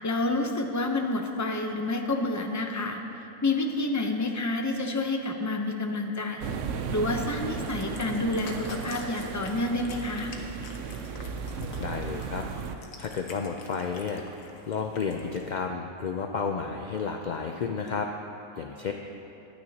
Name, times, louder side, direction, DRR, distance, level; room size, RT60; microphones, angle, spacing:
voice 1, 0.0-3.0 3.4-6.5 6.9-10.3, left 2 dB, 20° left, 3 dB, 0.6 m, -29 dB
sound 1, 6.4-12.8, right 6 dB, 70° right, 1.0 m, -35 dB
Cat, 7.3-15.5, left 3 dB, 85° left, 1.4 m, -47 dB
voice 2, 11.8-12.5 12.7-14.2 14.7-18.1 18.5-18.9, left 5 dB, 60° left, 3 dB, 0.4 m, -32 dB
21.5 x 9.5 x 2.9 m, 2.9 s
omnidirectional pair, 1.4 m